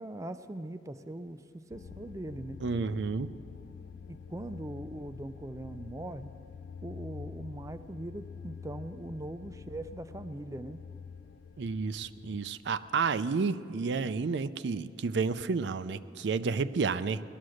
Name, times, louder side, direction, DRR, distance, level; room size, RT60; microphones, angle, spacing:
voice 1, 0.0-2.6 4.1-6.3 6.8-10.8, right 1 dB, 20° right, 11 dB, 0.4 m, -41 dB
sound 1, 1.7-13.6, left 6 dB, 70° left, 0.3 m, -47 dB
voice 2, 2.6-3.3 11.6-17.2, right 4 dB, 75° right, 13 dB, 0.4 m, -31 dB
18.0 x 11.5 x 6.4 m, 2.4 s
head